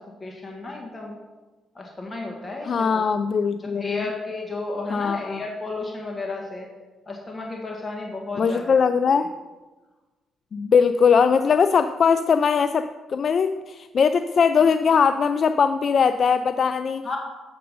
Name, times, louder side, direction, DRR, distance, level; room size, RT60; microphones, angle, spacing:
voice 1, 0.2-1.2 1.7-3.0 3.6-6.6 7.1-8.8 17.0-17.2, left 3 dB, 25° left, 0 dB, 1.5 m, -33 dB
voice 2, 2.6-4.1 4.9-5.5 8.4-9.3 10.5-17.0, left 6 dB, 50° left, 10 dB, 0.3 m, -20 dB
7.7 x 6.6 x 5.4 m, 1.2 s
cardioid pair, 90°, 0 cm